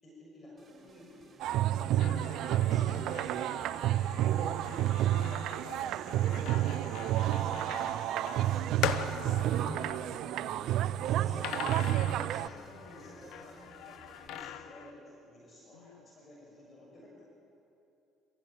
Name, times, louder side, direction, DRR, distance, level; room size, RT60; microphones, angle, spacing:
voice 1, 0.0-1.3 1.6-2.0 2.4-5.3 5.8-8.8 9.5-17.3, left 1 dB, 35° left, -3 dB, 6.8 m, -53 dB
sound 1, 0.6-14.3, right 3 dB, 30° right, 5.6 m, -57 dB
sound 2, 1.4-12.5, right 12 dB, 65° right, 0.6 m, -30 dB
sound 3, 2.0-10.7 11.4-14.9, left 10 dB, 65° left, 1.1 m, -42 dB
voice 2, 5.1-5.9 15.7-16.0, left 8 dB, 85° left, 6 dB, 0.8 m, -52 dB
26.0 x 15.5 x 8.6 m, 2.8 s
hypercardioid pair, 60°, 0 cm